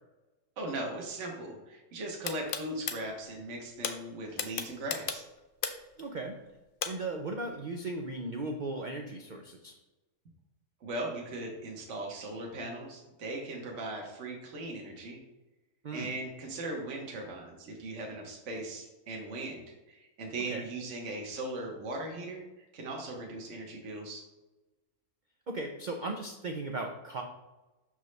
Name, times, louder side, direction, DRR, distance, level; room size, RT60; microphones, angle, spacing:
voice 1, 0.6-5.2 10.8-15.2 15.9-24.2, right 2 dB, 55° right, 0 dB, 1.3 m, -39 dB
sound 1, 2.2-3.0 3.8-3.9 4.4-5.9 6.8-6.9, left 7 dB, 85° left, 0.4 m, -33 dB
voice 2, 6.0-6.4 6.8-9.7 15.8-16.1 20.5-20.6 25.5-27.2, right 2 dB, 85° right, 2 dB, 0.4 m, -37 dB
6.1 x 5.3 x 3.2 m, 1.1 s
omnidirectional pair, 1.6 m